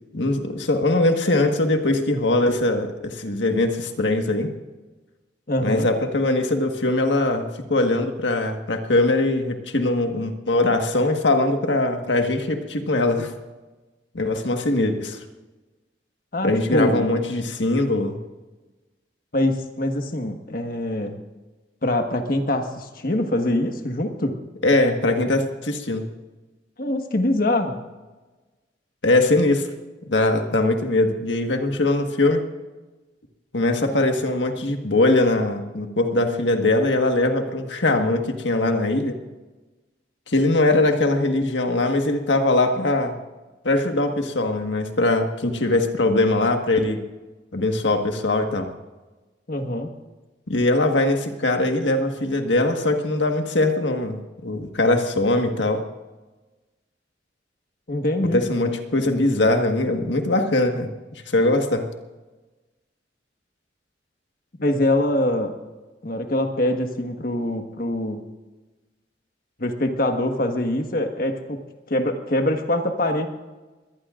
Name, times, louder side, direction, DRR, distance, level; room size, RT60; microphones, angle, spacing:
voice 1, 0.1-4.5 5.6-13.3 14.1-15.2 16.4-18.2 24.6-26.0 29.0-29.7 30.0-32.4 33.5-39.2 40.3-43.2 43.6-47.0 47.5-48.7 50.5-55.8 58.3-61.9, left 2 dB, 85° left, 5 dB, 1.5 m, -21 dB
voice 2, 5.5-5.9 16.3-17.1 19.3-21.2 21.8-24.4 26.8-27.8 49.5-49.9 57.9-58.4 64.6-65.5 66.0-68.2 69.6-71.6 71.9-73.3, left 1 dB, 50° left, 5 dB, 1.5 m, -24 dB
22.0 x 18.5 x 2.5 m, 1.2 s
head